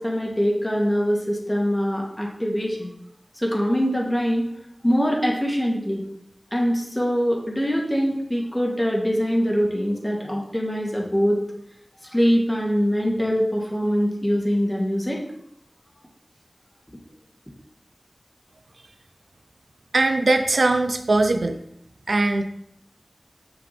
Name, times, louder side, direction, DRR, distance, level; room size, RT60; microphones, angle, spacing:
voice 1, 0.0-2.9 3.4-4.5 4.8-6.0 6.5-11.4 12.1-15.2, equal, 10° left, -1 dB, 2.0 m, -23 dB
voice 2, 19.9-21.6 22.1-22.4, right 2 dB, 85° right, 6 dB, 0.6 m, -20 dB
7.0 x 6.6 x 4.3 m, 0.76 s
wide cardioid pair, 65°, 0 cm